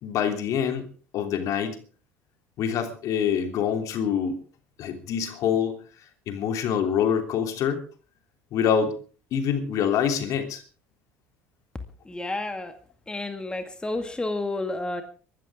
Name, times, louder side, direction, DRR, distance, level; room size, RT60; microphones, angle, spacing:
voice 1, 0.0-0.8 1.1-1.8 2.6-4.4 4.8-5.8 6.3-7.8 8.5-9.0 9.3-10.6, left 8 dB, 55° left, 6 dB, 3.2 m, -25 dB
voice 2, 12.1-12.7 13.1-15.0, left 2 dB, 15° left, 7 dB, 2.1 m, -30 dB
24.0 x 13.5 x 3.7 m, 0.39 s
hypercardioid pair, 65°, 7 cm